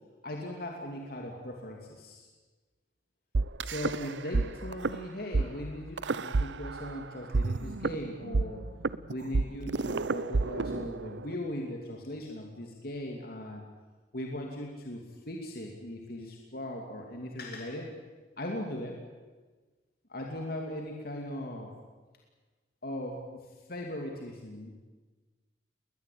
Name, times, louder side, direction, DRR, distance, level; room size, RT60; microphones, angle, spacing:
voice 1, 0.2-2.3 3.6-8.7 9.1-13.6 14.1-17.9 18.4-19.0 20.1-21.7 22.8-23.4 23.7-24.9, left 1 dB, 55° left, 1 dB, 2.9 m, -39 dB
sound 1, 3.3-4.4 4.7-4.9 5.3-5.4 6.0-7.0 7.3-11.3, right 3 dB, 80° right, 0.7 m, -29 dB
21.0 x 20.5 x 8.8 m, 1.3 s
head